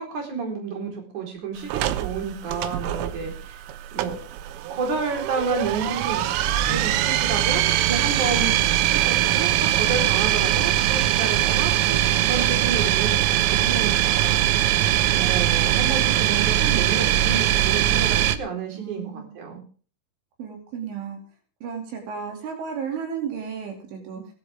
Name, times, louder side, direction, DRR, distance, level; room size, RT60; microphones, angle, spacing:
voice 1, 0.0-3.6 3.9-4.2 4.7-6.3 6.6-14.4 15.1-19.6 24.2-24.3, right 4 dB, 40° right, 2 dB, 5.3 m, -30 dB
sound 1, 1.7-18.4, right 13 dB, 90° right, 3.5 m, -22 dB
voice 2, 18.7-19.3 20.4-21.2 21.6-24.2, right 7 dB, 70° right, 2 dB, 5.1 m, -33 dB
19.5 x 12.5 x 3.6 m, 0.39 s
omnidirectional pair, 5.7 m